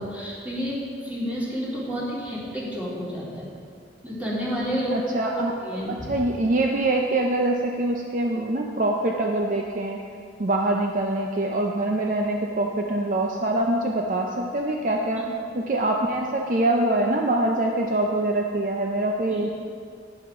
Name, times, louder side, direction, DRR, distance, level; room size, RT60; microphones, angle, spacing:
voice 1, 0.0-3.5 4.0-5.0 5.3-6.1, equal, 10° right, -9 dB, 2.9 m, -30 dB
voice 2, 4.9-5.5 6.0-10.0 10.4-15.3 15.5-19.5, right 2 dB, 45° right, 1 dB, 0.6 m, -24 dB
10.5 x 10.0 x 3.7 m, 2.3 s
head